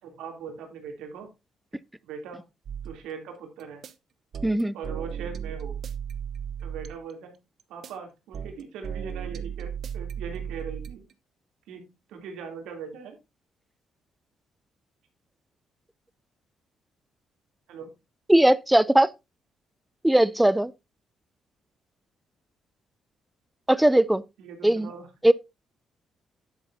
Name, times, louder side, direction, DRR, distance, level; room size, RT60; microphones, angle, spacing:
voice 1, 0.0-1.3 2.1-2.4 2.8-3.8 4.7-5.8 6.6-7.3 7.7-11.0 11.7-13.2 17.7-17.9 24.4-25.1, right 6 dB, 90° right, 3.0 m, -40 dB
sound 1, 2.7-3.0 3.6-3.9 4.3-7.1 7.6-7.9 8.3-11.1, right 8 dB, 60° right, 1.0 m, -35 dB
voice 2, 4.4-4.7 18.3-19.1 20.0-20.7 23.7-24.2 24.6-24.9 25.2-25.3, right 1 dB, 5° right, 0.4 m, -19 dB
10.5 x 8.2 x 2.7 m
cardioid pair, 90°, 0 cm